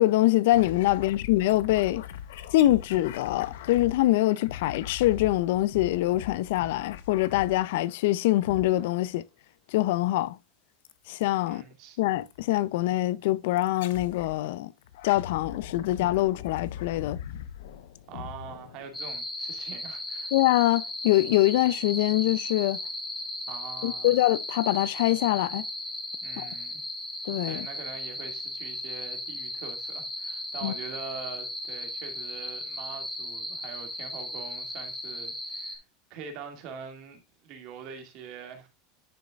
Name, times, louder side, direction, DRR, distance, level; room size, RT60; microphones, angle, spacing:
voice 1, 0.0-2.0 2.5-9.2 9.7-10.4 11.1-11.6 12.0-14.7 15.0-17.2 20.3-22.8 23.8-25.6 26.4-26.5 27.3-27.7 30.6-30.7, left 16 dB, 65° left, 0.4 m, -24 dB
sound 1, 0.5-8.0 8.4-9.1 10.8-11.3 12.3-12.4 13.6-14.4 14.8-19.2, left 10 dB, 90° left, 0.8 m, -41 dB
voice 2, 11.4-12.0 18.1-20.3 23.5-24.2 26.2-26.8 27.4-35.8 36.1-38.7, right 7 dB, 40° right, 2.1 m, -43 dB
sound 2, 18.9-35.8, left 1 dB, 5° left, 1.6 m, -36 dB
10.5 x 6.4 x 2.3 m
supercardioid pair, 175°, 0 cm